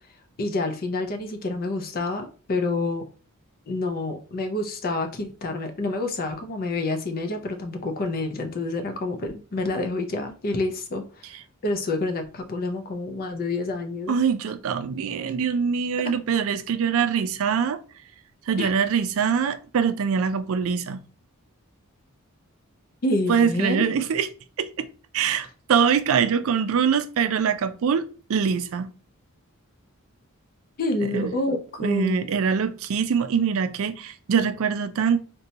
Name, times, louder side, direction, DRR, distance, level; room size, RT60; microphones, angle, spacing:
voice 1, 0.4-3.1 3.7-11.3 11.6-14.2 16.0-16.1 18.6-18.7 23.0-23.8 30.8-32.3, left 2 dB, 45° left, 0.5 m, -28 dB
voice 2, 14.1-17.8 18.5-21.0 23.3-24.3 24.6-24.9 25.1-28.9 31.1-31.3 31.8-35.3, right 6 dB, 70° right, 0.4 m, -23 dB
3.9 x 2.2 x 2.7 m
head